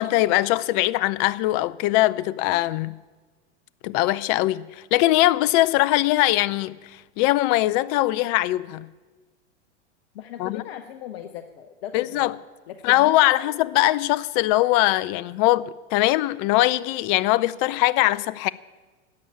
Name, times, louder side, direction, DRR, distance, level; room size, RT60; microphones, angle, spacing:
voice 1, 0.0-2.9 3.8-8.9 10.4-10.6 11.9-12.3 12.8-18.5, left 17 dB, 40° left, 0.6 m, -21 dB
voice 2, 10.1-12.3 12.7-13.6, left 10 dB, 60° left, 0.9 m, -38 dB
12.5 x 8.7 x 9.7 m
hypercardioid pair, 100°, 35 cm